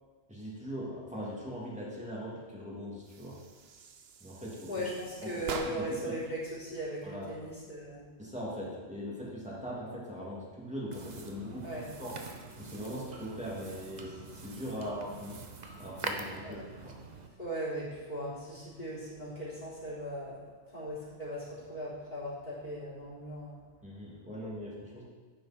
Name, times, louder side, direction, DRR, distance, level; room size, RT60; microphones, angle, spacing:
voice 1, 0.3-3.4 4.2-4.7 5.2-5.4 5.7-6.2 7.0-7.3 8.2-12.1 12.6-15.4 15.8-16.9 23.8-25.0, equal, 5° right, -5 dB, 2.8 m, -40 dB
sound 1, 3.0-6.1, right 5 dB, 65° right, 1.0 m, -44 dB
voice 2, 4.7-8.1 11.6-11.9 16.4-16.6 17.4-23.6, equal, 40° left, -7 dB, 4.2 m, -38 dB
sound 2, 10.9-17.3, right 3 dB, 40° right, 1.0 m, -44 dB
11.5 x 9.4 x 4.5 m, 1.5 s
omnidirectional pair, 1.2 m